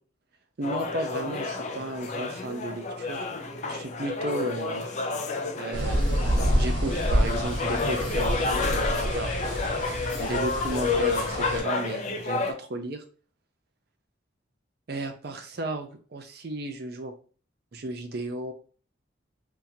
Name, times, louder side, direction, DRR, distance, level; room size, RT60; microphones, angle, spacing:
sound 1, 0.6-12.5, left 3 dB, 40° left, 0.4 m, -30 dB
voice 1, 0.6-3.2 3.7-4.9 5.6-9.7 10.2-13.0 14.9-17.1 17.7-18.5, right 2 dB, 55° right, 6 dB, 0.6 m, -34 dB
sound 2, 5.7-11.6, equal, 80° right, 1.4 m, -28 dB
3.6 x 2.9 x 2.7 m, 0.40 s
head